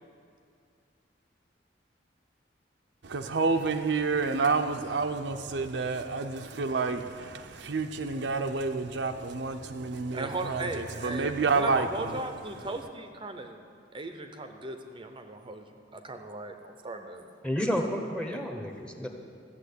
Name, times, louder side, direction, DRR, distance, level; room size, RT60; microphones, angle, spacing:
voice 1, 3.0-12.2, right 4 dB, 70° right, 6 dB, 0.6 m, -29 dB
voice 2, 10.1-13.6 13.9-15.6 15.9-17.3, right 2 dB, 25° right, 6 dB, 0.7 m, -37 dB
voice 3, 17.4-19.1, equal, 5° left, 3 dB, 1.0 m, -30 dB
14.0 x 7.2 x 8.3 m, 2.3 s
head